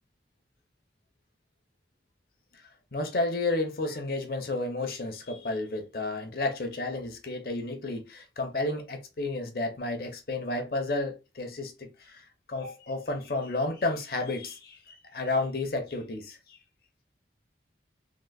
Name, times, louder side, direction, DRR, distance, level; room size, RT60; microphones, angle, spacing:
voice 1, 2.5-16.6, left 2 dB, 55° left, 0.7 m, -32 dB
3.8 x 2.5 x 2.4 m
head